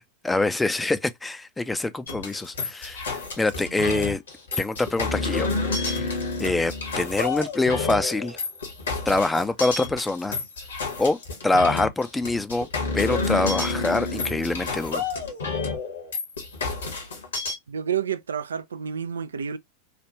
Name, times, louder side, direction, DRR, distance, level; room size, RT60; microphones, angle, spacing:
voice 1, 0.2-4.2 4.6-5.5 5.8-6.1 6.4-8.4 9.1-10.4 11.0-11.2 11.4-12.7 12.9-15.0, left 2 dB, 10° left, 0.4 m, -25 dB
sound 1, 2.1-17.5, left 3 dB, 70° left, 1.3 m, -29 dB
voice 2, 17.7-19.6, right 8 dB, 70° right, 0.3 m, -29 dB
3.3 x 2.4 x 2.9 m
figure-of-eight pair, 90°, 0 cm